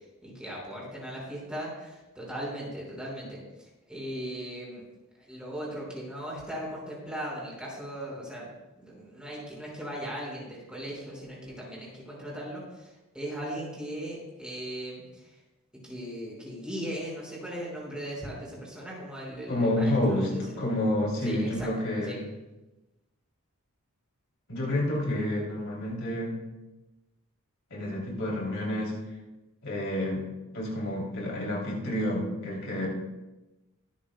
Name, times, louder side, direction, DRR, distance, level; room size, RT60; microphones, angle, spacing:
voice 1, 0.2-4.8 5.2-8.5 8.8-15.3 15.8-20.7 21.2-21.7 22.1-22.2, right 1 dB, 5° right, -4 dB, 5.2 m, -38 dB
voice 2, 19.5-22.2 24.5-26.4 27.7-29.0 29.6-30.3 30.5-32.9, left 1 dB, 65° left, -2 dB, 3.3 m, -29 dB
23.5 x 10.5 x 2.3 m, 1.0 s
head